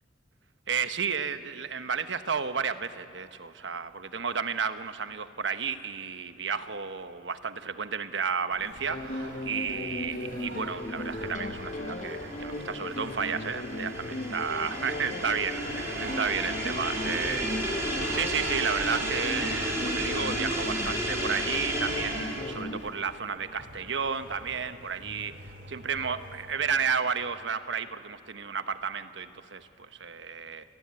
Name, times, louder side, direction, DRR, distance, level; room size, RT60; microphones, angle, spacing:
voice 1, 0.7-25.4 25.7-30.6, right 6 dB, 85° right, 10 dB, 1.2 m, -32 dB
Singing, 8.5-26.7, right 1 dB, 65° right, 3.7 m, -45 dB
sound 1, 8.9-22.8, left 1 dB, 45° left, 1.3 m, -36 dB
sound 2, 10.7-22.6, right 1 dB, 15° right, 5.5 m, -33 dB
28.5 x 19.5 x 9.7 m, 2.7 s
head